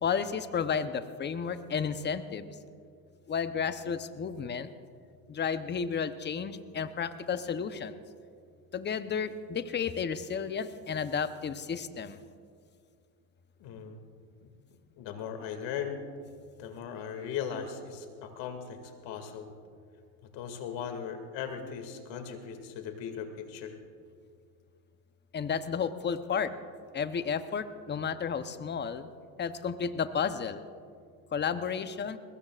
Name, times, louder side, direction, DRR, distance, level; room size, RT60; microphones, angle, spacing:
voice 1, 0.0-2.6 3.3-4.7 5.3-8.0 8.7-12.2 25.3-26.5 26.9-29.1 29.4-30.6 31.3-32.2, left 6 dB, 20° left, 11 dB, 0.8 m, -32 dB
voice 2, 13.6-14.0 14.4-16.0 16.6-19.5 20.3-23.8, left 7 dB, 60° left, 5 dB, 2.5 m, -38 dB
22.0 x 20.5 x 2.5 m, 2.2 s
hypercardioid pair, 85°, 49 cm